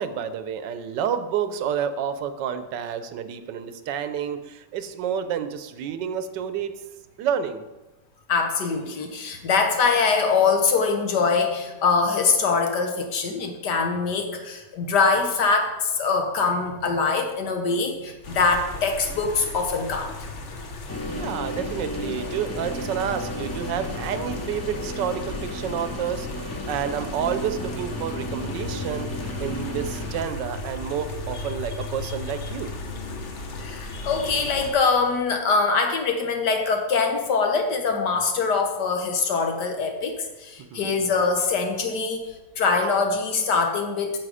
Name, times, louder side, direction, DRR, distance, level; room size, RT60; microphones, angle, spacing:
voice 1, 0.0-6.8 7.2-7.6 21.1-32.8 40.7-40.9, right 8 dB, 80° right, 11 dB, 1.3 m, -29 dB
voice 2, 8.3-20.1 33.6-42.2 42.6-44.2, left 4 dB, 70° left, 4 dB, 1.7 m, -23 dB
sound 1, 18.2-34.7, left 2 dB, 45° left, 1.1 m, -35 dB
sound 2, 20.9-30.2, left 1 dB, 10° left, 0.9 m, -34 dB
9.0 x 6.6 x 4.9 m, 1.1 s
omnidirectional pair, 1.9 m